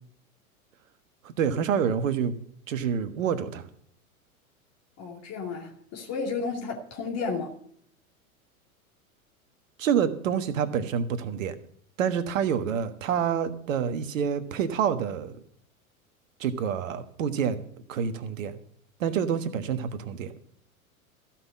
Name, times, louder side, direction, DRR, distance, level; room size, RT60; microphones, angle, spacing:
voice 1, 1.2-2.3 2.7-3.6 9.8-11.5 12.0-15.4 16.4-17.6 17.9-18.6 19.0-20.3, right 7 dB, 60° right, 1.5 m, -27 dB
voice 2, 5.0-7.5, left 4 dB, 35° left, 2.4 m, -32 dB
15.0 x 5.9 x 8.4 m
figure-of-eight pair, 90°, 43 cm